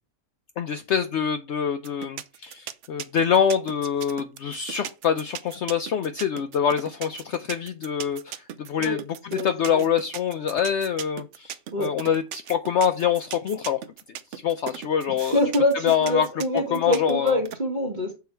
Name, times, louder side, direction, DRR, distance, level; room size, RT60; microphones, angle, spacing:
voice 1, 0.6-13.8 14.3-15.4 15.8-16.3 16.5-17.4, left 8 dB, 65° left, 9 dB, 0.8 m, -25 dB
sound 1, 1.8-17.6, right 10 dB, 65° right, 0.9 m, -37 dB
voice 2, 15.1-18.1, left 1 dB, 35° right, -2 dB, 1.3 m, -25 dB
7.1 x 4.7 x 4.4 m, 0.29 s
omnidirectional pair, 1.5 m